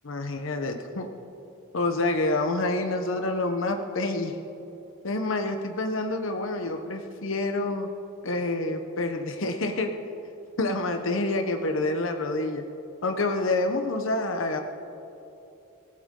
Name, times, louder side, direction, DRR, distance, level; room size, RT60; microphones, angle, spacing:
voice 1, 0.0-1.1 1.7-4.3 5.0-7.9 8.2-9.9 10.6-12.6 13.0-14.6, left 2 dB, 65° left, 6 dB, 0.9 m, -27 dB
23.5 x 15.0 x 3.8 m, 2.9 s
head